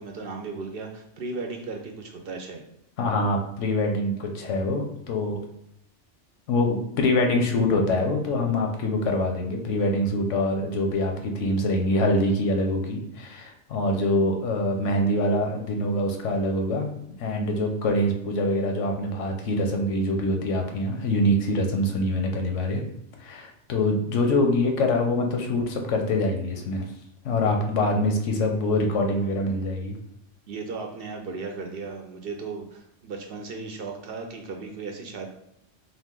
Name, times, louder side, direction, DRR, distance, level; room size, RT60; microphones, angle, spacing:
voice 1, 0.0-2.6 30.5-35.3, right 4 dB, 60° right, 3 dB, 0.7 m, -36 dB
voice 2, 3.0-5.4 6.5-16.9 17.2-22.8 23.2-26.9 27.2-29.9, left 1 dB, 85° left, 3 dB, 1.0 m, -24 dB
3.9 x 2.5 x 3.7 m, 0.77 s
omnidirectional pair, 1.2 m